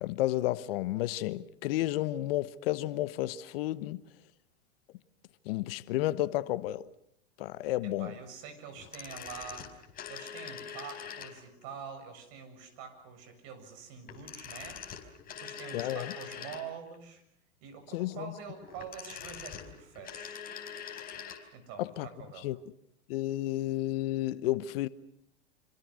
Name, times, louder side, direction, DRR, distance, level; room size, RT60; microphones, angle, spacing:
voice 1, 0.0-4.0 5.4-6.8 7.4-8.1 15.7-16.1 17.9-18.3 21.8-22.1 22.4-22.6 23.1-24.9, left 15 dB, 55° left, 1.1 m, -31 dB
voice 2, 7.8-9.7 10.1-14.8 15.4-17.2 17.6-20.4 21.5-22.5, right 6 dB, 45° right, 7.3 m, -46 dB
sound 1, 8.8-11.6 14.0-16.9 18.6-21.5 21.7-21.8, left 8 dB, 25° left, 4.7 m, -44 dB
27.0 x 26.5 x 6.4 m
hypercardioid pair, 125°, 35 cm